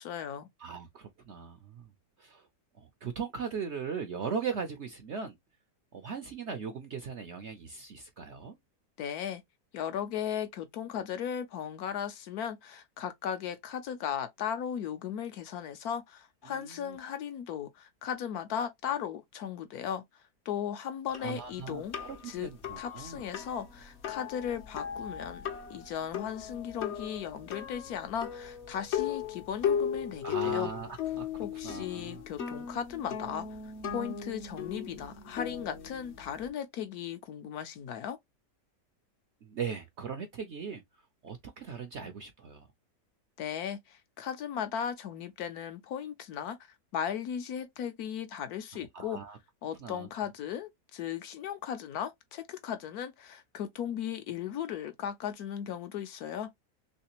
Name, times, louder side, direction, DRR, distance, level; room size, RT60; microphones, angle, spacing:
voice 1, 0.0-0.5 9.0-9.4 9.7-20.0 20.5-22.0 22.3-22.5 22.8-30.7 31.4-33.5 33.9-38.2 43.4-46.6 46.9-49.2 49.6-56.5, left 9 dB, 70° left, 1.1 m, -36 dB
voice 2, 0.6-1.9 2.2-2.5 2.8-5.4 5.9-8.6 16.4-17.0 21.2-23.2 30.2-32.2 39.4-40.8 41.2-42.7 48.9-49.4 49.8-50.1, right 6 dB, 65° right, 0.7 m, -39 dB
sound 1, 21.1-36.5, left 8 dB, 55° left, 0.8 m, -37 dB
3.3 x 3.2 x 2.8 m
omnidirectional pair, 1.8 m